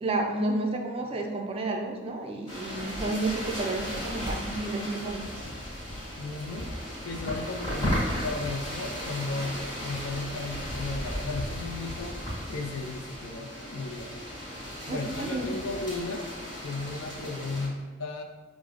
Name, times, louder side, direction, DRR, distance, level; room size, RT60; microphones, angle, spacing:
voice 1, 0.0-5.3 14.9-15.5, right 2 dB, 30° right, 2 dB, 0.3 m, -31 dB
sound 1, 2.5-17.7, equal, 20° left, 1.3 m, -35 dB
voice 2, 6.2-6.7 7.0-12.2 12.5-14.1 14.5-16.3 16.6-18.2, left 3 dB, 85° left, 2 dB, 0.4 m, -35 dB
4.7 x 2.0 x 2.4 m, 1.3 s
head